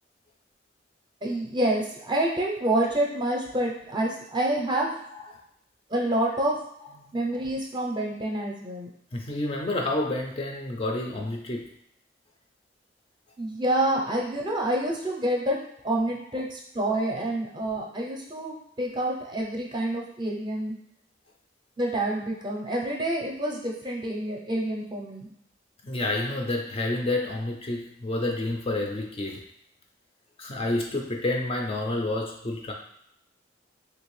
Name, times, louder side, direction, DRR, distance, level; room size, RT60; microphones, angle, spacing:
voice 1, 1.2-4.9 5.9-6.6 7.1-8.9 13.4-15.6 15.8-20.7 21.8-25.3, right 1 dB, 25° right, -1 dB, 0.6 m, -27 dB
voice 2, 9.1-11.6 25.8-29.4 30.4-32.7, left 2 dB, 30° left, 1 dB, 0.4 m, -29 dB
3.3 x 2.6 x 3.1 m, 0.73 s
head